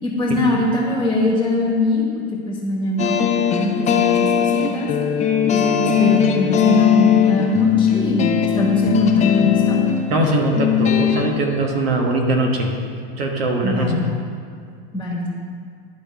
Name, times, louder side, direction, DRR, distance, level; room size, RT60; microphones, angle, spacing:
voice 1, 0.0-3.2 3.5-4.9 5.5-9.8 13.6-14.2 14.9-15.3, left 1 dB, 5° left, -4 dB, 1.3 m, -22 dB
sound 1, 3.0-11.3, left 8 dB, 25° left, 0.5 m, -18 dB
voice 2, 10.1-12.7 13.2-14.0, right 2 dB, 80° right, 2 dB, 1.3 m, -21 dB
11.5 x 4.2 x 3.4 m, 2.3 s
hypercardioid pair, 115°, 29 cm